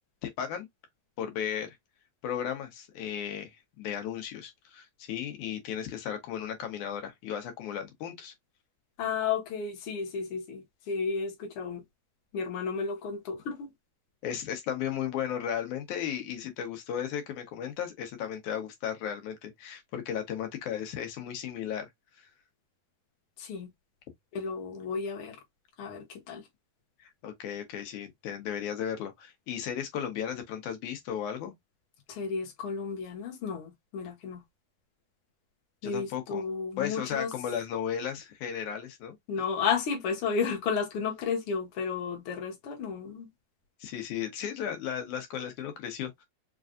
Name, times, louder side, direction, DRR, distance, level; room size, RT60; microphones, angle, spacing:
voice 1, 0.2-0.7 1.2-1.8 2.2-3.5 3.8-8.3 14.2-21.9 22.2-22.3 27.0-31.5 35.8-36.4 36.8-39.2 43.8-46.2, left 9 dB, 90° left, 2.5 m, -35 dB
voice 2, 9.0-11.8 12.3-13.7 23.4-23.7 24.3-25.4 25.8-26.5 32.1-34.4 35.8-37.3 39.3-43.3, left 5 dB, 55° left, 1.9 m, -32 dB
5.4 x 2.5 x 2.4 m
omnidirectional pair, 3.3 m